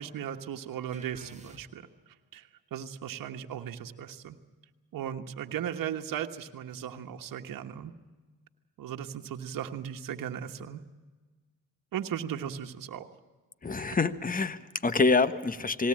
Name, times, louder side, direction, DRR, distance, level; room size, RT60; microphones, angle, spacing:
voice 1, 0.0-1.9 2.3-4.4 4.9-7.9 8.8-10.8 11.9-13.1, right 9 dB, 75° right, 5 dB, 1.4 m, -37 dB
sound 1, 0.9-2.1, right 3 dB, 20° right, 1.9 m, -51 dB
voice 2, 13.6-15.9, left 4 dB, 25° left, 13 dB, 1.3 m, -26 dB
20.0 x 17.5 x 8.8 m, 1.3 s
cardioid pair, 75°, 34 cm